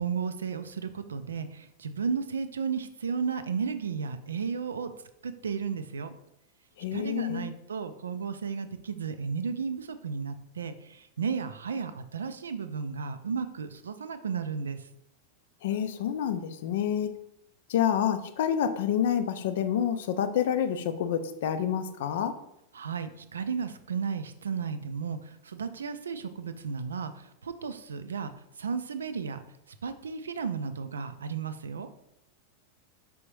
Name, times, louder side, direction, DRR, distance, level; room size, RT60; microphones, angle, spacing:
voice 1, 0.0-4.9 5.2-6.1 6.9-14.8 22.7-28.3 28.6-29.4 29.8-31.9, right 6 dB, 70° right, 11 dB, 0.3 m, -34 dB
voice 2, 6.8-7.5 15.6-17.1 17.7-22.3, left 9 dB, 55° left, 10 dB, 0.4 m, -28 dB
4.9 x 3.4 x 3.1 m, 0.82 s
figure-of-eight pair, 90°, 0 cm